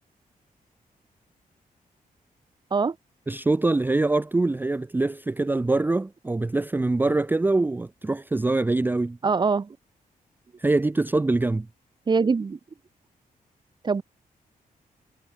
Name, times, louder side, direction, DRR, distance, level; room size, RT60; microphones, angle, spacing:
voice 1, 3.3-9.2 10.6-11.7, right 2 dB, 15° right, 0.5 m, -24 dB
voice 2, 9.2-9.8 12.1-12.6 13.8-14.0, right 5 dB, 30° right, 1.1 m, -23 dB
wide cardioid pair, 165°, 15 cm